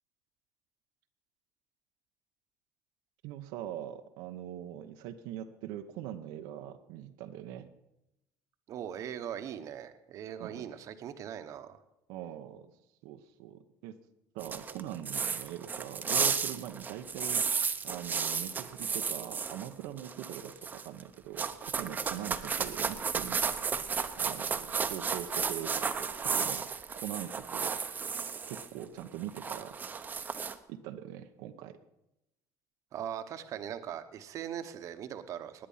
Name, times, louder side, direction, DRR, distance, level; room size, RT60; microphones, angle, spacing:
voice 1, 3.2-7.7 10.4-10.6 12.1-12.7 13.0-14.0 14.3-17.5 17.8-23.4 24.2-26.7 27.0-27.8 28.5-30.0 30.7-31.7, right 11 dB, 85° right, 6 dB, 0.9 m, -42 dB
voice 2, 8.7-11.8 32.9-35.7, right 9 dB, 50° right, 10 dB, 1.1 m, -40 dB
sound 1, 14.4-19.7 20.0-21.0 21.4-28.7 29.0-30.5, right 6 dB, 25° right, 0.9 m, -33 dB
19.0 x 9.7 x 5.7 m, 0.89 s
cardioid pair, 135°, 7 cm